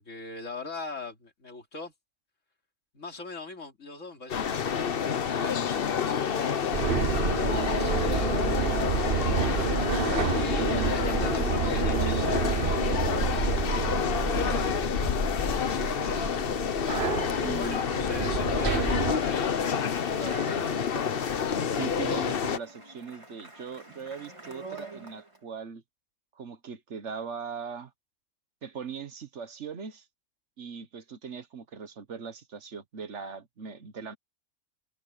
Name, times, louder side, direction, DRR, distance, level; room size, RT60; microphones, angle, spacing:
voice 1, 0.0-1.9 2.9-6.5 7.4-9.2 9.5-14.8 15.6-16.3 17.3-21.1, left 3 dB, 85° left, 3.4 m, -41 dB
sound 1, 4.3-22.6, left 7 dB, 50° left, 1.0 m, -28 dB
sound 2, 6.7-19.1, right 6 dB, 50° right, 1.2 m, -29 dB
voice 2, 9.1-9.6 17.4-18.1 21.7-25.8 26.4-27.9 28.6-30.0 30.6-34.2, right 6 dB, 70° right, 1.5 m, -40 dB
Speech, 19.5-25.4, right 2 dB, 25° right, 3.2 m, -45 dB
omnidirectional pair, 1.3 m